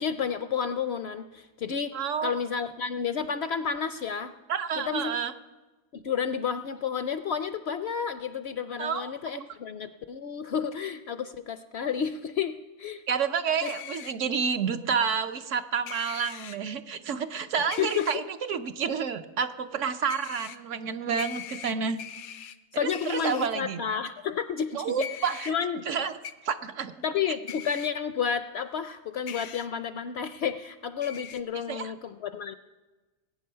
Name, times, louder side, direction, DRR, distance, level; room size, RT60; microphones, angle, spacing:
voice 1, 0.0-4.3 4.8-5.2 5.9-13.0 13.6-13.7 17.8-18.2 22.7-25.1 25.5-25.9 27.0-32.6, left 7 dB, 60° left, 10 dB, 0.7 m, -31 dB
voice 2, 1.9-2.3 4.5-5.3 8.8-9.1 13.1-18.2 18.5-22.0 22.7-23.8 24.7-25.5 25.9-26.1 26.4-26.9 31.7-31.9, right 6 dB, 65° right, 8 dB, 1.0 m, -29 dB
sound 1, 13.6-14.1 15.9-16.6 17.7-18.2 20.1-20.6 21.2-22.6 22.9-23.5 25.0-25.5 26.2-26.3 27.5-27.9 29.3-29.7 31.0-31.4, left 9 dB, 90° left, 1.1 m, -41 dB
20.0 x 9.0 x 5.6 m, 1.2 s
omnidirectional pair, 1.5 m